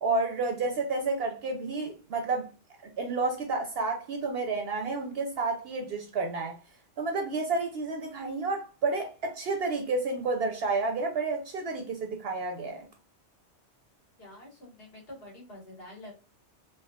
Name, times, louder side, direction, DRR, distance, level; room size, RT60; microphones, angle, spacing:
voice 1, 0.0-2.5 3.0-6.6 7.0-12.9, right 3 dB, 65° right, 0.7 m, -30 dB
voice 2, 14.2-16.1, left 1 dB, 55° left, 1.6 m, -47 dB
3.5 x 2.7 x 2.3 m
omnidirectional pair, 1.2 m